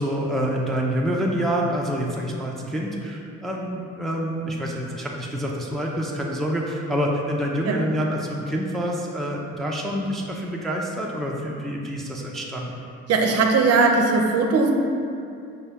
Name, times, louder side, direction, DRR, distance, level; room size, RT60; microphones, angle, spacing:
voice 1, 0.0-12.8, equal, ahead, -2 dB, 0.4 m, -27 dB
voice 2, 13.1-14.7, right 4 dB, 55° right, 2 dB, 0.5 m, -19 dB
5.2 x 2.2 x 3.4 m, 2.5 s
cardioid pair, 90°, 30 cm